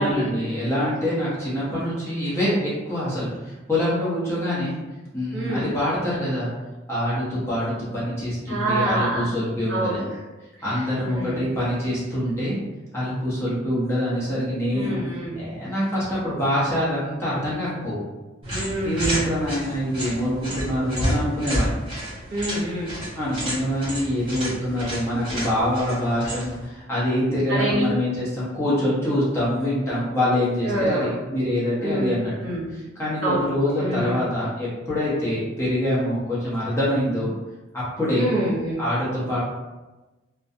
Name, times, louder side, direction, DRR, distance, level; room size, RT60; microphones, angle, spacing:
voice 1, 0.0-4.7 5.1-6.5 6.9-10.1 10.6-12.6 12.9-15.0 15.4-18.0 18.8-21.8 23.2-32.3 32.7-37.3 37.7-38.3 38.8-39.4, left 1 dB, 15° left, -9 dB, 0.7 m, -25 dB
voice 2, 5.3-5.7 8.5-9.3 9.7-10.1 10.7-11.4 14.7-15.5 18.5-19.1 22.3-23.0 27.5-27.8 30.6-31.1 31.8-32.1 32.4-32.7 33.2-33.4 33.8-34.2 38.1-38.8, right 1 dB, 65° right, -7 dB, 0.9 m, -26 dB
Squeaky Bed Action, 18.4-26.7, equal, 25° right, 1.2 m, -30 dB
2.4 x 2.2 x 2.6 m, 1.1 s
head